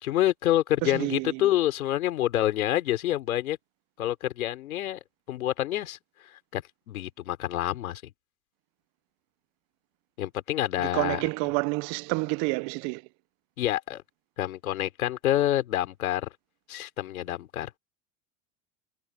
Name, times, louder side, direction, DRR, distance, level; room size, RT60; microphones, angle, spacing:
voice 1, 0.0-3.6 4.0-5.0 5.3-6.0 6.2-8.0 10.2-11.2 13.6-14.0 14.4-16.3 16.7-17.7, left 13 dB, 85° left, 3.9 m, -27 dB
voice 2, 0.8-1.5 10.8-13.0, right 29 dB, 55° right, 0.8 m, -29 dB
hypercardioid pair, 100°, 41 cm